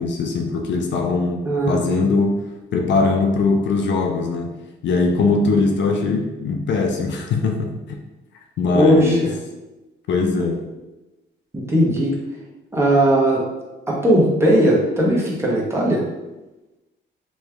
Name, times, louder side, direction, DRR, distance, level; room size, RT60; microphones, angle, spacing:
voice 1, 0.0-2.4 2.7-4.5 4.8-8.0 8.6-9.3 10.1-10.6, left 3 dB, 65° left, 3 dB, 0.5 m, -21 dB
voice 2, 1.4-2.1 8.7-9.3 11.5-12.1 12.7-13.4 13.9-16.0, right 1 dB, 15° right, -4 dB, 1.1 m, -18 dB
3.1 x 3.1 x 3.5 m, 1.1 s
cardioid pair, 90°, 20 cm